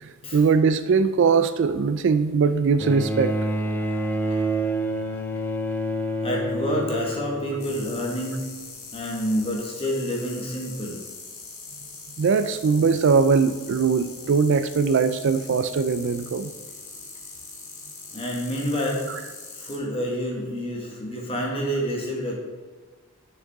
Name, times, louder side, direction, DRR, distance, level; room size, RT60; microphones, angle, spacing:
voice 1, 0.0-3.3 12.2-16.5, right 5 dB, 60° right, 10 dB, 0.4 m, -21 dB
Bowed string instrument, 2.8-8.3 9.4-9.5, right 1 dB, 10° left, 0.5 m, -28 dB
voice 2, 6.2-8.4 8.9-11.0 18.1-19.1 19.5-22.4, equal, 25° left, -1 dB, 1.5 m, -28 dB
relays-fast-switching, 7.6-19.8, left 4 dB, 85° left, 1.7 m, -42 dB
6.7 x 6.4 x 3.6 m, 1.4 s
head